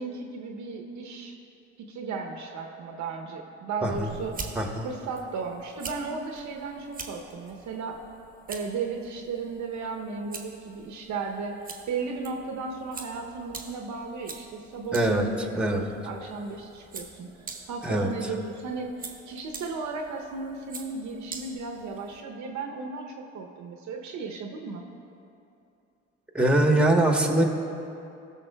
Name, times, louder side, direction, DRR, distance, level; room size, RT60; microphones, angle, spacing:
voice 1, 0.0-1.3 1.8-4.3 4.8-8.0 8.5-11.6 11.9-17.3 17.7-24.9, right 4 dB, 55° right, 2 dB, 0.8 m, -35 dB
voice 2, 3.8-4.1 4.5-4.9 14.9-15.3 15.5-15.9 17.8-18.3 26.3-27.4, right 1 dB, 5° right, 2 dB, 1.1 m, -23 dB
sound 1, 3.9-22.2, right 4 dB, 25° right, 0.9 m, -45 dB
15.5 x 6.2 x 2.2 m, 2.7 s
hypercardioid pair, 65°, 34 cm